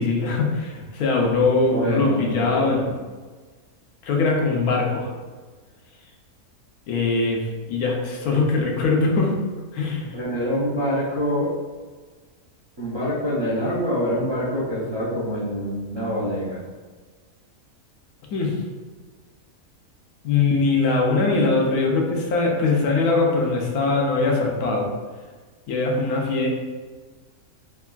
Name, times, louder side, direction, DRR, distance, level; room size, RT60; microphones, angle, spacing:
voice 1, 0.0-2.8 4.0-5.1 6.9-9.4 9.7-10.1 18.3-18.6 20.2-24.9 25.7-26.5, left 3 dB, 85° left, 0 dB, 1.1 m, -21 dB
voice 2, 1.7-2.9 10.1-11.5 12.8-16.6, equal, 50° right, -10 dB, 0.3 m, -25 dB
3.3 x 2.2 x 2.2 m, 1.4 s
omnidirectional pair, 1.6 m